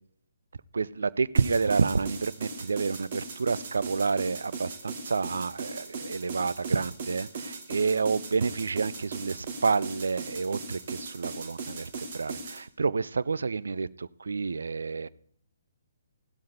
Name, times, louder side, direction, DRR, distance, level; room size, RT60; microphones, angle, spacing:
voice 1, 0.7-15.1, right 4 dB, 65° right, 18 dB, 0.3 m, -29 dB
sound 1, 1.3-12.6, right 4 dB, 45° right, 1.8 m, -38 dB
16.0 x 12.0 x 2.8 m, 0.65 s
figure-of-eight pair, 135°, 0 cm